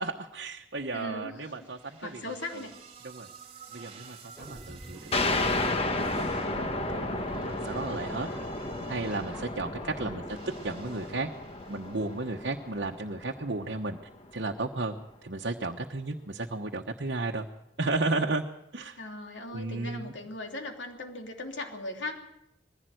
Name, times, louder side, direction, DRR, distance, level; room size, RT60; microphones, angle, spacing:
voice 1, 0.0-2.2 2.5-2.6 3.0-3.3 3.7-8.3 8.9-10.2 10.6-11.3 11.7-14.0 14.3-15.0 15.2-17.5 17.8-18.4 18.7-19.0 19.5-20.1, right 3 dB, 65° right, 1 dB, 1.1 m, -34 dB
voice 2, 0.9-1.5 2.0-2.8 10.0-10.2 19.0-22.2, left 2 dB, 85° left, 3 dB, 3.1 m, -38 dB
sound 1, 1.4-12.7, right 5 dB, 35° right, 2.5 m, -52 dB
sound 2, 4.3-10.2, right 1 dB, 5° right, 5.6 m, -46 dB
sound 3, 5.1-14.3, left 2 dB, 30° left, 1.3 m, -33 dB
21.0 x 16.0 x 7.8 m, 0.86 s
head